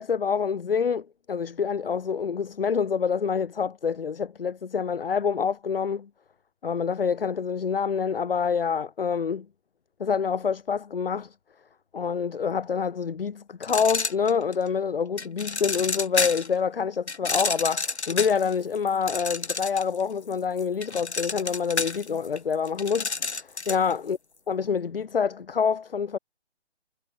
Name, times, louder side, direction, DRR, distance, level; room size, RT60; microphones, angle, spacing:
voice 1, 0.0-6.1 6.6-9.5 10.0-11.3 11.9-24.2 24.5-26.2, left 6 dB, 55° left, 0.8 m, -27 dB
sound 1, 13.6-14.7 15.2-16.5 17.1-20.0 20.3-23.9, left 3 dB, 75° left, 1.6 m, -30 dB
figure-of-eight pair, 145°, 33 cm